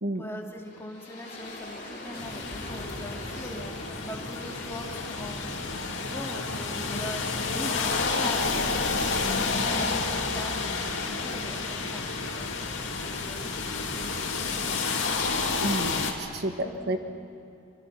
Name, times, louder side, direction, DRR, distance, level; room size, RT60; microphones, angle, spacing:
voice 1, 0.1-15.6 16.8-17.0, left 1 dB, 10° left, 0 dB, 2.6 m, -42 dB
sound 1, 0.6-11.5, left 1 dB, 35° left, 5.2 m, -44 dB
sound 2, 2.1-16.1, left 4 dB, 60° left, 2.9 m, -30 dB
voice 2, 15.6-17.0, right 1 dB, 50° right, 6 dB, 1.4 m, -30 dB
27.5 x 26.0 x 6.3 m, 2.7 s
head